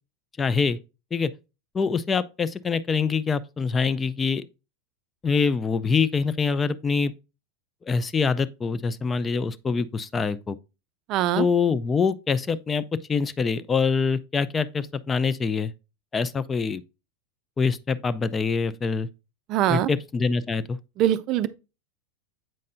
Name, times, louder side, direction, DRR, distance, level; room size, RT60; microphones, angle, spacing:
voice 1, 0.4-0.8 1.1-1.3 1.7-4.5 5.2-7.1 7.9-10.6 11.4-15.7 16.1-16.8 17.6-19.1 19.7-20.8, left 5 dB, 20° left, 0.4 m, -25 dB
voice 2, 11.1-11.5 19.5-19.9 21.0-21.5, right 12 dB, 45° right, 0.4 m, -22 dB
7.6 x 5.3 x 2.6 m
hypercardioid pair, 100°, 0 cm